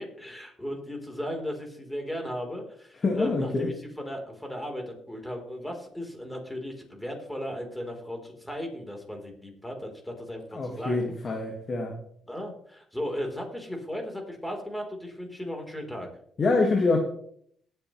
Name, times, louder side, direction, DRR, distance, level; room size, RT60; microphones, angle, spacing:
voice 1, 0.0-11.1 12.3-16.1, equal, 5° left, 2 dB, 3.8 m, -36 dB
voice 2, 3.0-3.7 10.5-12.0 16.4-17.0, left 3 dB, 40° left, 1 dB, 1.9 m, -25 dB
19.0 x 7.8 x 3.2 m, 0.65 s
cardioid pair, 90°, 0 cm